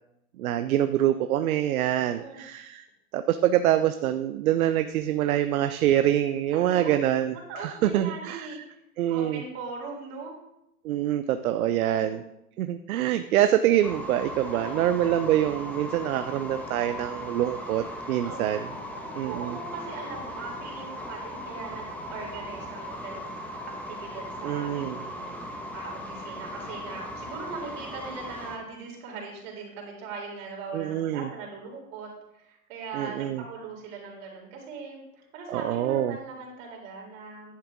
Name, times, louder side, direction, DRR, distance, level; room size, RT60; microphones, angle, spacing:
voice 1, 0.4-2.9 3.1-8.6 9.0-9.4 10.8-12.2 12.6-18.7 19.1-19.6 24.4-25.0 30.7-31.3 32.9-33.4 35.5-36.2, right 12 dB, 70° right, 10 dB, 0.6 m, -25 dB
voice 2, 1.9-2.4 6.5-6.9 7.3-8.6 9.1-10.3 11.8-12.2 14.5-14.8 18.2-18.6 19.0-23.3 23.9-32.1 32.3-35.0 35.3-37.5, right 4 dB, 55° right, -2 dB, 4.0 m, -40 dB
sound 1, 13.8-28.6, left 1 dB, 5° left, 1.5 m, -38 dB
10.5 x 7.3 x 3.7 m, 0.86 s
hypercardioid pair, 110°, 44 cm